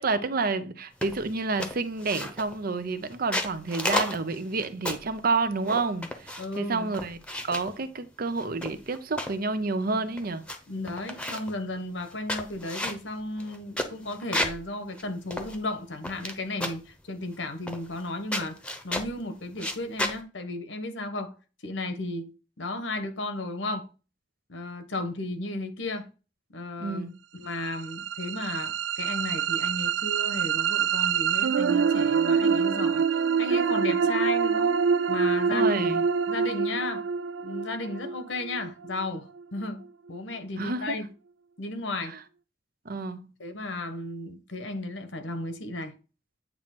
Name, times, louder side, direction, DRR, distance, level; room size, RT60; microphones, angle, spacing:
voice 1, 0.0-7.2 7.4-10.5 26.8-27.2 35.5-36.0 40.6-41.0 42.0-42.2 42.8-43.3, right 3 dB, 50° right, 0.7 m, -29 dB
sound 1, 1.0-1.3 1.6-2.6 3.1-5.1 5.6-6.6 6.9-7.7 8.4-9.4 9.9-10.0 10.2-10.6 10.8-11.5 12.0-14.6 15.0-15.1 15.3-16.3 16.6-16.9 17.7-18.1 18.3-19.1 19.5-20.2, left 1 dB, 5° left, 1.0 m, -32 dB
voice 2, 6.4-6.9 10.7-18.6 18.8-21.3 21.6-22.3 22.6-23.9 24.5-26.1 26.5-27.0 27.3-33.0 33.4-34.8 35.1-35.9 36.3-37.1 37.4-41.1 41.6-42.1 43.4-46.0, left 2 dB, 80° left, 1.3 m, -34 dB
sound 2, 27.6-39.6, right 6 dB, 80° right, 0.4 m, -26 dB
8.9 x 3.2 x 5.9 m
head